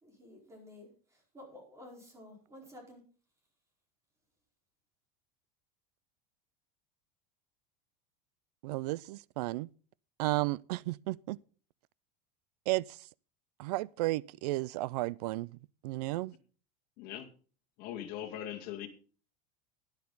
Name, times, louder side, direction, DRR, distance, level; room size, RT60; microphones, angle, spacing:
voice 1, 0.0-3.0, left 1 dB, 15° right, 4.6 m, -52 dB
voice 2, 8.6-9.7 10.2-11.4 12.7-12.8 13.6-15.5 15.8-16.3, right 19 dB, 85° right, 0.5 m, -33 dB
voice 3, 17.0-17.3 17.8-18.9, left 11 dB, 50° left, 2.3 m, -40 dB
13.0 x 10.5 x 4.0 m
supercardioid pair, 155°, 20 cm